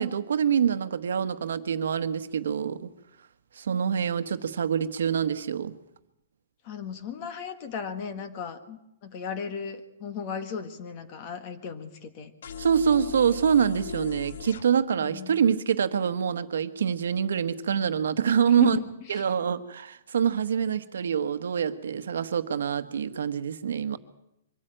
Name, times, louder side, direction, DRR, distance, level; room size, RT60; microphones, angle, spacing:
voice 1, 0.0-2.9 3.6-5.7 12.6-18.8 19.1-24.0, right 7 dB, 75° right, 11 dB, 1.3 m, -25 dB
voice 2, 6.6-12.3 15.0-15.4 18.6-19.3, left 7 dB, 30° left, 9 dB, 1.6 m, -36 dB
sound 1, 12.4-14.6, left 7 dB, 60° left, 1.3 m, -38 dB
24.0 x 13.5 x 9.0 m, 0.84 s
hypercardioid pair, 175°, 0 cm